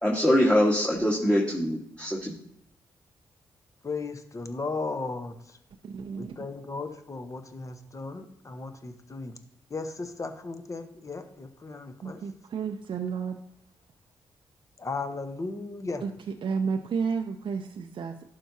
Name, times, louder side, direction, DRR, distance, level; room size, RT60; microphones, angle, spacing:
voice 1, 0.0-2.3, equal, 10° left, -4 dB, 1.6 m, -23 dB
voice 2, 3.8-5.4 6.2-9.3 9.7-12.2 14.8-16.0, left 3 dB, 35° left, 7 dB, 1.0 m, -36 dB
voice 3, 5.8-6.3 12.0-13.4 16.0-16.1 16.4-18.3, right 5 dB, 55° right, 4 dB, 0.5 m, -31 dB
11.5 x 4.6 x 2.8 m, 0.79 s
hypercardioid pair, 40°, 10 cm